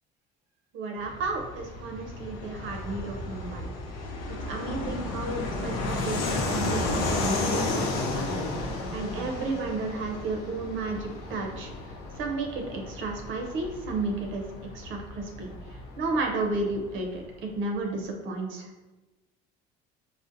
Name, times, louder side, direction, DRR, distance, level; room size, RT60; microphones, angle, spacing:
voice 1, 0.7-3.7 4.3-8.4 8.9-11.7 12.2-14.4 14.7-15.5 16.0-18.7, right 3 dB, 65° right, 1 dB, 0.6 m, -32 dB
Fixed-wing aircraft airplane, 1.0-17.2, left 2 dB, 75° left, 0.5 m, -33 dB
3.7 x 2.0 x 2.5 m, 1.1 s
supercardioid pair, 85°, 21 cm